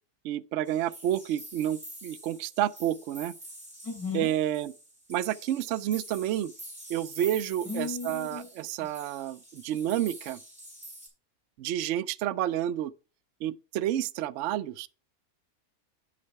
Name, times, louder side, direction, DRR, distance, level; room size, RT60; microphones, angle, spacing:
voice 1, 0.2-3.3 4.1-4.7 5.1-6.5 6.9-10.4 11.6-12.9 13.4-14.9, right 12 dB, 65° right, 0.8 m, -30 dB
sound 1, 0.7-11.1, right 1 dB, 30° right, 4.9 m, -47 dB
voice 2, 3.8-4.3 7.6-8.5, left 4 dB, 90° left, 2.9 m, -35 dB
8.7 x 5.4 x 4.7 m
omnidirectional pair, 1.5 m